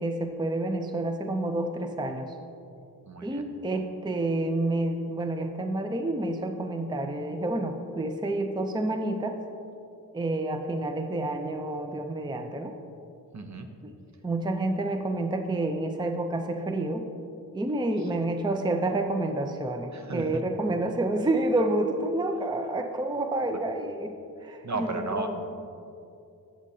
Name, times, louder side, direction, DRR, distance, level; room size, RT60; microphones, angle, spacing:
voice 1, 0.0-2.3 3.2-9.4 10.1-12.7 13.8-13.9 14.2-17.0 17.5-24.1 24.4-25.3, right 2 dB, 10° right, 6 dB, 0.5 m, -29 dB
voice 2, 3.0-3.5 13.3-13.7 18.0-18.3 19.9-20.4 23.5-23.6 24.5-25.5, right 2 dB, 50° right, 6 dB, 0.8 m, -35 dB
13.5 x 7.4 x 2.8 m, 2.7 s
cardioid pair, 70°, 37 cm